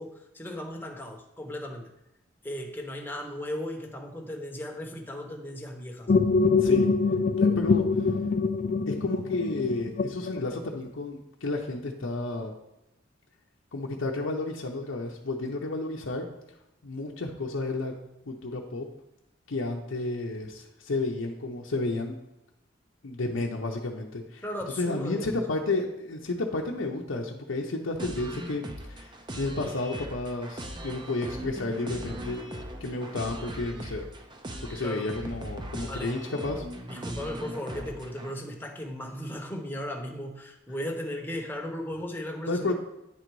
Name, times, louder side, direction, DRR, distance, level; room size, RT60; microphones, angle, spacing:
voice 1, 0.0-1.9 2.4-6.1 24.4-25.4 34.8-35.1 35.9-36.2 36.9-42.7, left 1 dB, 10° left, 1 dB, 0.9 m, -36 dB
sound 1, 6.1-10.9, left 4 dB, 40° left, 0.3 m, -24 dB
voice 2, 7.4-7.8 8.9-12.5 13.7-16.3 16.8-17.9 18.3-18.9 19.5-22.2 23.0-24.4 24.8-32.4 32.8-34.0 34.7-36.7 42.5-42.7, left 2 dB, 80° left, -1 dB, 0.7 m, -31 dB
sound 2, 28.0-38.3, right 1 dB, 25° right, 0.6 m, -39 dB
9.2 x 3.9 x 4.6 m, 0.92 s
head